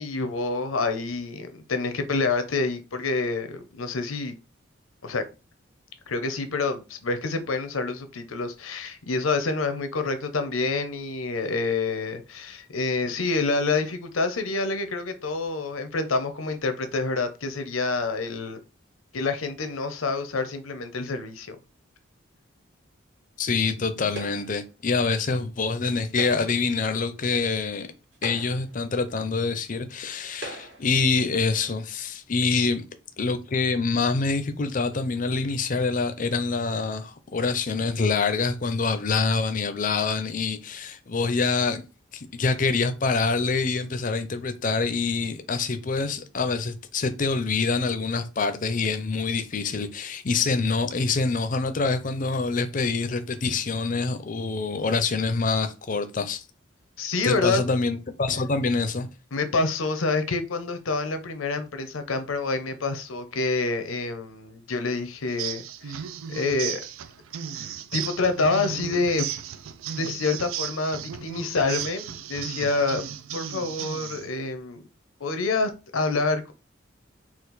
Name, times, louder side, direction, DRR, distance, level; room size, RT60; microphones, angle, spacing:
voice 1, 0.0-4.3 5.0-5.2 6.1-18.6 19.1-21.6 32.5-32.7 57.0-57.6 59.3-66.0 66.3-66.8 67.6-67.7 67.9-69.3 70.0-73.0 73.3-74.8 75.2-76.5, left 3 dB, 90° left, 0.8 m, -27 dB
voice 2, 23.4-27.9 28.2-32.8 33.2-41.8 42.1-56.4 57.2-59.1, left 4 dB, 40° left, 0.5 m, -26 dB
sound 1, 24.1-24.7 26.0-26.7 27.5-27.6 28.1-28.8 29.7-29.8 30.3-30.9, right 1 dB, 70° right, 2.0 m, -38 dB
sound 2, 65.3-74.3, right 9 dB, 90° right, 0.4 m, -35 dB
4.3 x 2.4 x 4.0 m
head